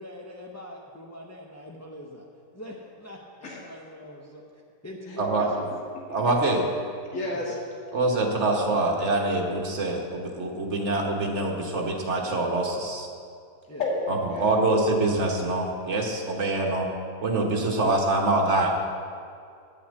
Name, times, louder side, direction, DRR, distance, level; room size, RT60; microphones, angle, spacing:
voice 1, 0.0-2.3 2.5-4.4 4.8-5.7 13.7-13.8, left 1 dB, 20° left, -2 dB, 0.4 m, -42 dB
voice 2, 5.1-5.5 7.1-7.6 13.8-14.5, left 2 dB, 50° left, -4 dB, 2.2 m, -31 dB
voice 3, 6.1-6.6 7.9-13.1 14.4-16.9 17.2-18.7, right 2 dB, 50° right, 0 dB, 1.5 m, -25 dB
10.0 x 5.8 x 8.1 m, 2.4 s
omnidirectional pair, 1.7 m